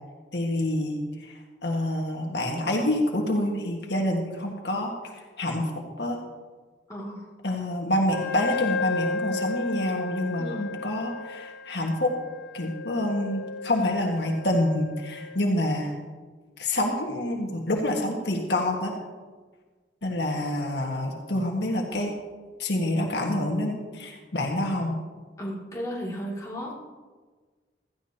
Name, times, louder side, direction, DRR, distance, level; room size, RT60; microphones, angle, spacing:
voice 1, 0.3-4.9 5.4-6.2 7.4-12.1 12.5-15.9 16.6-18.9 20.0-22.1 22.6-25.0, left 1 dB, 70° left, 1 dB, 1.7 m, -27 dB
voice 2, 6.9-7.3 10.4-10.7 25.4-26.7, equal, 20° left, -5 dB, 2.5 m, -34 dB
Wind instrument woodwind instrument, 8.1-15.4, left 4 dB, 55° left, 1.3 m, -34 dB
16.5 x 13.5 x 2.9 m, 1.4 s
head